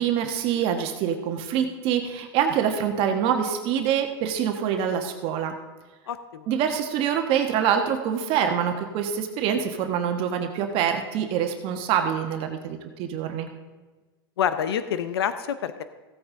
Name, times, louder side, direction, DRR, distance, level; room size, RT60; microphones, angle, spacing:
voice 1, 0.0-5.5 6.5-13.5, right 8 dB, 45° right, 5 dB, 1.2 m, -25 dB
voice 2, 6.1-6.5 14.4-15.8, left 8 dB, 85° left, 11 dB, 0.7 m, -27 dB
15.5 x 8.7 x 3.8 m, 1.3 s
hypercardioid pair, 125°, 13 cm